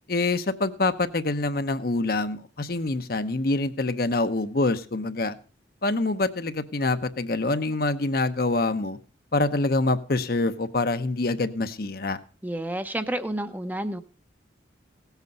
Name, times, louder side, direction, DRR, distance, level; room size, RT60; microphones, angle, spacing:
voice 1, 0.1-5.4 5.8-9.0 9.3-12.2, left 2 dB, 50° left, 10 dB, 0.8 m, -25 dB
voice 2, 12.4-14.0, right 1 dB, 10° right, 9 dB, 0.6 m, -30 dB
17.0 x 8.2 x 5.3 m, 0.38 s
head